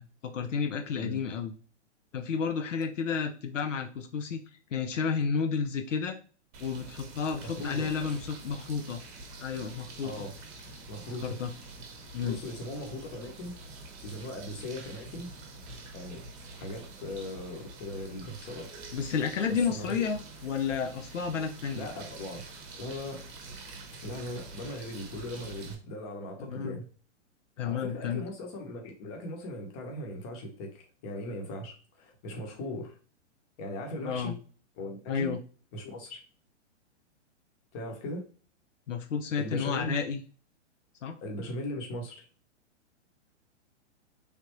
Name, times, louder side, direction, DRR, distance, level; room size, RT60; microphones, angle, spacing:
voice 1, 0.0-1.5 2.1-4.4 4.7-6.2 6.6-9.0 9.4-10.3 11.2-11.5 12.1-12.4 18.9-21.9 26.4-26.8 27.6-28.2 34.0-34.4 35.1-35.4 38.9-40.2 41.0-41.2, left 6 dB, 85° left, 5 dB, 0.6 m, -31 dB
sound 1, 6.5-25.7, right 3 dB, 35° right, 0.8 m, -46 dB
voice 2, 7.4-7.9 10.0-10.3 10.9-11.4 12.2-13.6 14.0-15.3 15.9-16.2 16.5-18.8 19.5-20.0 21.7-22.4 22.8-23.2 24.0-26.8 27.7-33.0 33.6-34.4 34.8-35.4 35.7-36.2 37.7-38.2 39.4-39.9 41.2-42.2, left 1 dB, 30° left, 2 dB, 1.0 m, -39 dB
3.4 x 2.5 x 3.0 m, 0.39 s
hypercardioid pair, 130°, 36 cm